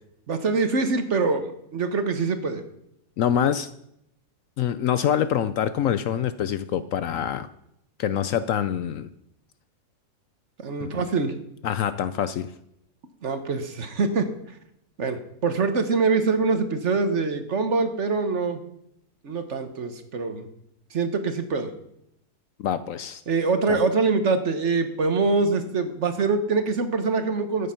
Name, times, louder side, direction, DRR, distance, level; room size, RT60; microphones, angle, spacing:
voice 1, 0.3-2.6 10.6-11.4 13.2-14.6 15.0-18.6 19.2-20.5 20.9-21.7 23.3-27.7, right 4 dB, 50° right, 9 dB, 1.3 m, -24 dB
voice 2, 3.2-3.7 4.6-7.5 8.0-9.1 10.8-11.0 11.6-12.5 22.6-23.2 23.7-23.8, left 9 dB, 70° left, 13 dB, 0.9 m, -25 dB
13.5 x 8.6 x 5.6 m, 0.77 s
omnidirectional pair, 1.7 m